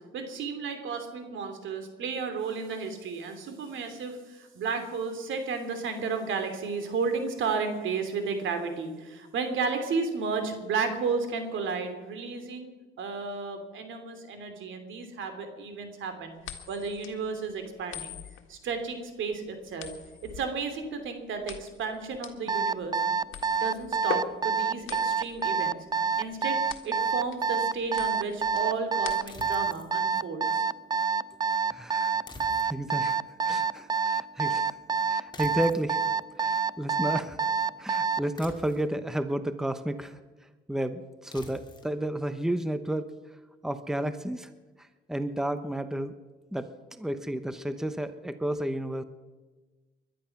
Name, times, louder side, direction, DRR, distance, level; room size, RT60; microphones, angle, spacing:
voice 1, 0.0-16.4 16.7-18.2 18.5-19.9 20.3-23.0 23.6-25.8 26.2-26.6 26.8-30.6, right 5 dB, 75° right, 6 dB, 2.9 m, -33 dB
sound 1, 16.4-29.6, left 8 dB, 80° left, 1.8 m, -42 dB
Alarm, 22.5-38.3, right 5 dB, 20° right, 0.4 m, -27 dB
sound 2, 29.3-29.9 32.3-33.0 35.3-35.9 38.3-39.0 41.3-41.9, left 2 dB, 20° left, 2.6 m, -47 dB
voice 2, 31.7-33.2 33.5-34.8 35.1-36.0 36.4-37.4 37.8-40.2 40.7-43.1 43.6-44.5 44.8-46.1 46.5-49.0, right 1 dB, ahead, 10 dB, 1.0 m, -32 dB
21.0 x 11.5 x 5.9 m, 1.3 s
cardioid pair, 90°, 20 cm